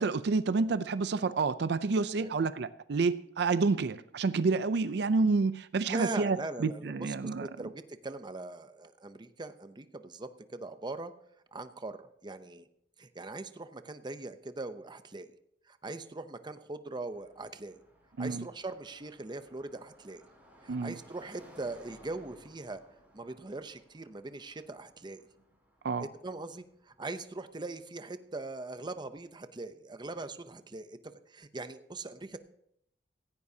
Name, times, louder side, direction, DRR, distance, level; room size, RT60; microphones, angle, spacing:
voice 1, 0.0-7.7 18.2-18.5 20.7-21.0 25.8-26.1, right 4 dB, 65° right, 14 dB, 0.5 m, -29 dB
voice 2, 5.9-6.9 7.4-11.1 11.5-12.6 13.0-15.3 15.7-17.8 18.2-20.2 20.6-22.8 23.1-25.2 26.0-31.0 31.3-32.4, right 2 dB, 25° right, 10 dB, 0.6 m, -41 dB
Car passing by, 17.1-28.2, equal, 10° right, 5.5 m, -60 dB
16.5 x 15.5 x 2.8 m, 0.73 s
head